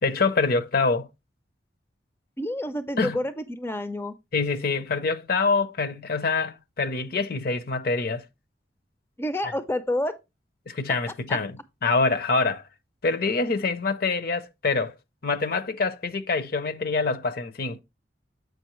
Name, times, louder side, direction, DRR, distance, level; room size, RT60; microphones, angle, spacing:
voice 1, 0.0-1.1 3.0-3.2 4.3-8.2 9.4-9.5 10.7-11.6 11.8-12.6 13.0-14.9 15.2-17.8, left 4 dB, 55° left, 0.7 m, -25 dB
voice 2, 2.4-4.1 9.2-10.2 11.3-11.4, left 1 dB, 15° left, 0.5 m, -29 dB
7.7 x 5.2 x 3.0 m
head